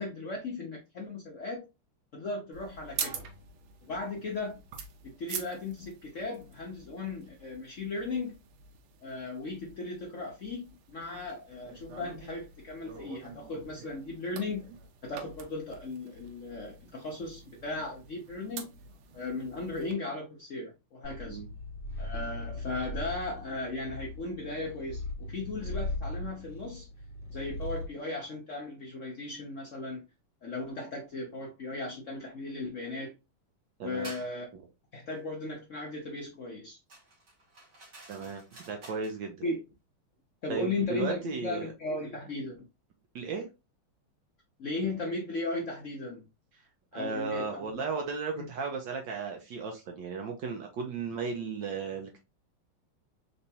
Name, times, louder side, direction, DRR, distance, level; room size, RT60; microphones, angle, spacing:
voice 1, 0.0-1.7 2.1-3.3 3.8-4.6 5.0-8.3 9.0-14.7 15.0-18.7 19.1-21.4 22.0-26.9 27.3-30.1 30.4-33.1 33.8-34.5 34.9-36.8 39.4-39.6 40.4-42.6 44.6-46.2 46.9-47.6 48.3-48.4, left 2 dB, 75° left, 0.7 m, -36 dB
sound 1, 2.5-19.9, right 7 dB, 90° right, 1.6 m, -46 dB
Purr, 21.0-28.0, left 2 dB, 30° left, 2.3 m, -38 dB
voice 2, 33.8-34.1 38.1-38.4 38.7-39.4 40.5-41.6 43.1-43.5 46.9-52.2, right 4 dB, 65° right, 1.3 m, -35 dB
sound 2, 34.0-34.3 36.9-39.2, right 2 dB, 40° right, 1.5 m, -50 dB
3.9 x 3.4 x 2.8 m
omnidirectional pair, 2.4 m